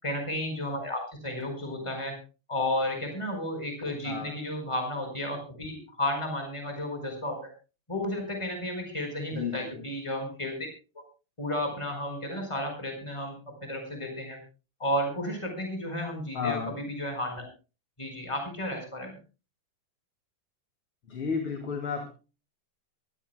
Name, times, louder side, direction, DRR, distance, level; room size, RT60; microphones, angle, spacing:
voice 1, 0.0-2.2 2.5-7.5 7.9-10.7 10.9-11.0 11.4-14.4 14.8-17.4 18.0-19.2, left 1 dB, 15° left, 4 dB, 4.9 m, -33 dB
voice 2, 4.0-4.4 9.3-9.8 16.3-16.7 21.1-22.1, left 6 dB, 80° left, 4 dB, 3.5 m, -32 dB
23.0 x 15.0 x 2.2 m, 0.32 s
omnidirectional pair, 2.3 m